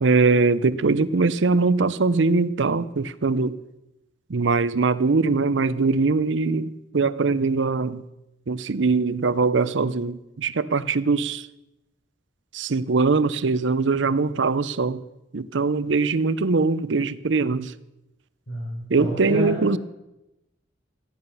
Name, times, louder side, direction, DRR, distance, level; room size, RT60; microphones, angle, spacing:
voice 1, 0.0-3.6 4.3-8.0 8.5-11.5 12.5-15.0 15.3-17.7 18.9-19.8, right 4 dB, 75° right, 0.6 m, -22 dB
voice 2, 18.5-19.7, equal, 75° left, 5.0 m, -29 dB
14.5 x 10.5 x 6.8 m
head